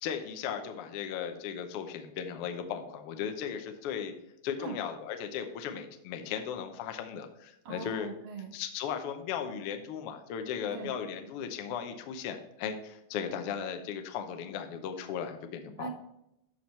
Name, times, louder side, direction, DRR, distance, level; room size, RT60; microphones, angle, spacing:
voice 1, 0.0-4.1 4.4-8.1 8.5-15.9, left 8 dB, 70° left, 6 dB, 1.4 m, -36 dB
voice 2, 7.7-8.6 10.7-10.9 15.8-15.9, right 4 dB, 50° right, 2 dB, 1.9 m, -40 dB
12.5 x 4.4 x 3.2 m, 0.82 s
omnidirectional pair, 3.5 m